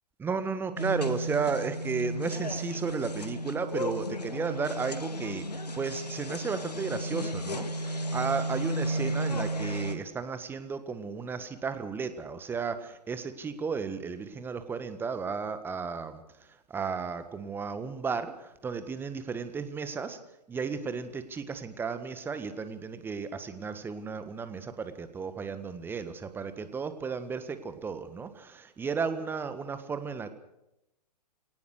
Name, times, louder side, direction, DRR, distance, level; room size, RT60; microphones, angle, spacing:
voice 1, 0.2-20.2 20.5-30.3, right 5 dB, 10° right, 11 dB, 1.5 m, -34 dB
sound 1, 0.8-10.0, right 1 dB, 75° left, 2.1 m, -33 dB
24.0 x 18.5 x 6.5 m, 0.89 s
figure-of-eight pair, 120°, 21 cm